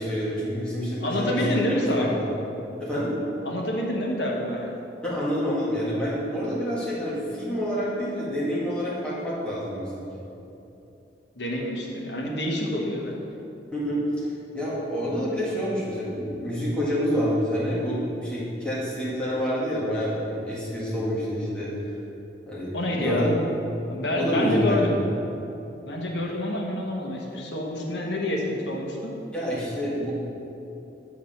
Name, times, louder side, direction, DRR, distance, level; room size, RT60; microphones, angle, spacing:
voice 1, 0.0-2.1 2.8-3.1 5.0-10.1 13.7-14.3 14.5-21.7 22.5-22.7 23.0-23.3 24.2-24.9 29.3-30.1, equal, 5° left, -9 dB, 1.7 m, -27 dB
voice 2, 1.0-2.1 3.4-4.7 11.3-13.1 22.7-23.4 23.9-24.9 25.8-29.1, left 1 dB, 75° left, 0 dB, 1.1 m, -27 dB
7.1 x 4.8 x 5.7 m, 2.9 s
head